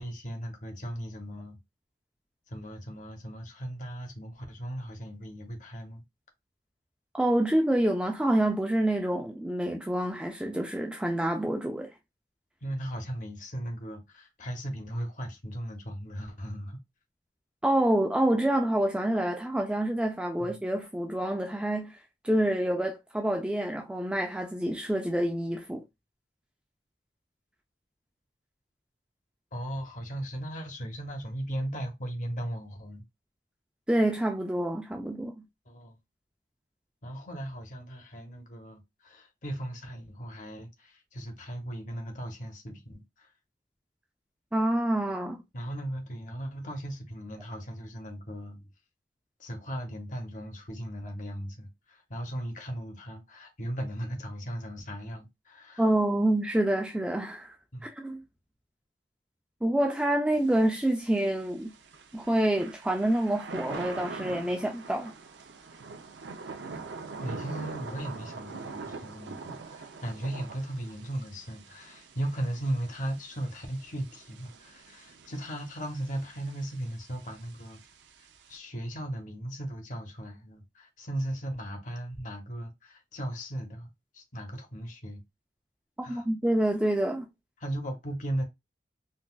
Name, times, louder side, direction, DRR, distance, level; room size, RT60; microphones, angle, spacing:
voice 1, 0.0-1.6 2.5-6.0 12.6-16.8 20.4-20.5 29.5-33.0 35.7-36.0 37.0-43.3 45.5-48.7 49.4-55.9 57.7-57.9 67.2-77.8 78.5-85.2 86.0-86.3 87.6-88.4, right 1 dB, 45° left, 0.9 m, -37 dB
voice 2, 7.1-11.9 17.6-21.9 22.2-25.8 33.9-35.4 44.5-45.4 55.8-57.5 57.8-58.2 59.6-61.7 62.1-65.1 86.0-87.3, right 1 dB, 5° right, 0.3 m, -27 dB
Thunder / Rain, 60.3-78.6, right 4 dB, 80° right, 0.5 m, -44 dB
3.8 x 2.3 x 2.3 m
head